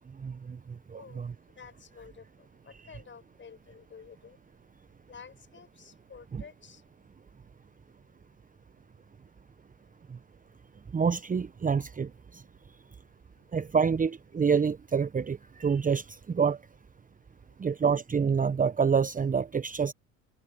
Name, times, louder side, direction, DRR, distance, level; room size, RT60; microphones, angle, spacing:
voice 1, 0.2-0.6 0.9-1.3 6.3-6.4 10.1-10.2 10.9-12.4 13.5-16.6 17.6-19.9, right 6 dB, 20° right, 1.3 m, -27 dB
voice 2, 0.8-7.4 7.7-7.8 9.4-9.5 9.8-10.0 12.7-13.6 17.3-17.7, left 6 dB, 30° left, 7.6 m, -53 dB
figure-of-eight pair, 65°, 41 cm